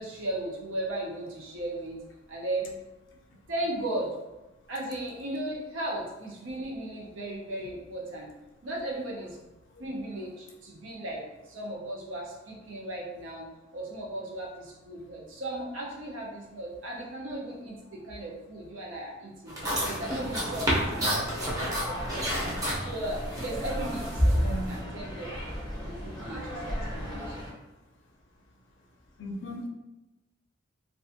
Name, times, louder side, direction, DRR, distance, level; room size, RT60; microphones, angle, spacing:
voice 1, 0.0-2.0 2.3-2.7 3.5-4.1 4.7-8.3 8.6-9.5 9.8-13.4 13.7-19.5 19.8-22.5 22.8-25.6 25.8-27.4, right 1 dB, 75° right, -2 dB, 0.6 m, -36 dB
sound 1, 19.5-24.8, equal, 20° right, 0.6 m, -29 dB
sound 2, 19.6-27.5, equal, 25° left, 0.6 m, -37 dB
voice 2, 24.4-24.7 29.2-29.7, right 1 dB, 65° left, 1 dB, 0.5 m, -36 dB
2.4 x 2.4 x 2.6 m, 1.1 s
head